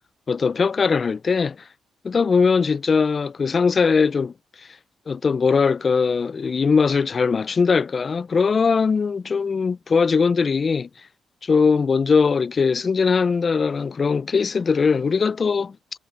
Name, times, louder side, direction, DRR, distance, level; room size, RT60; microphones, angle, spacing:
voice 1, 0.3-1.6 2.0-4.3 5.1-10.9 11.4-15.8, left 5 dB, 40° left, 0.4 m, -20 dB
cardioid pair, 90°, 0 cm